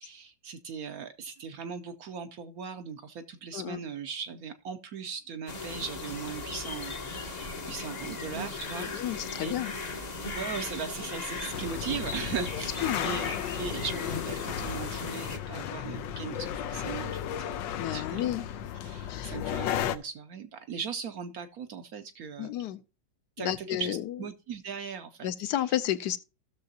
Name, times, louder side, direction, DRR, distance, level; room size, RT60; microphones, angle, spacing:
voice 1, 0.0-9.5 10.3-17.6 17.9-18.5 18.8-22.5 23.4-25.3, right 6 dB, 65° right, 0.9 m, -39 dB
sound 1, 5.5-15.4, left 3 dB, 35° left, 0.6 m, -37 dB
voice 2, 8.8-9.7 12.5-13.1 17.8-18.5 19.0-19.4 22.4-22.8 23.4-24.2 25.2-26.2, left 12 dB, 75° left, 1.1 m, -32 dB
sound 2, 11.5-20.0, left 10 dB, 90° left, 1.3 m, -34 dB
15.5 x 6.7 x 2.7 m
omnidirectional pair, 2.0 m